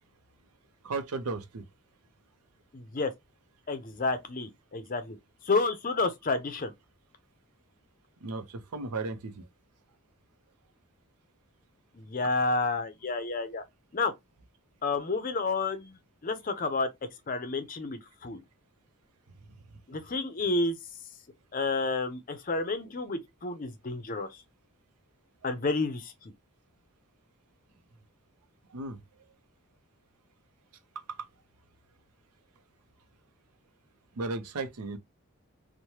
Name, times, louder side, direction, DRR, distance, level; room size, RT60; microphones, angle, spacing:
voice 1, 0.8-1.7 8.2-9.5 19.5-20.0 25.4-25.6 28.7-29.2 30.9-31.3 34.1-35.0, right 3 dB, 90° right, 0.6 m, -36 dB
voice 2, 2.7-3.1 3.7-5.2 5.4-6.7 12.0-13.6 13.9-14.1 14.8-16.0 16.2-16.9 17.3-18.4 19.9-20.8 21.5-24.3 25.4-26.1, left 3 dB, 40° left, 0.5 m, -30 dB
3.1 x 2.1 x 2.7 m
head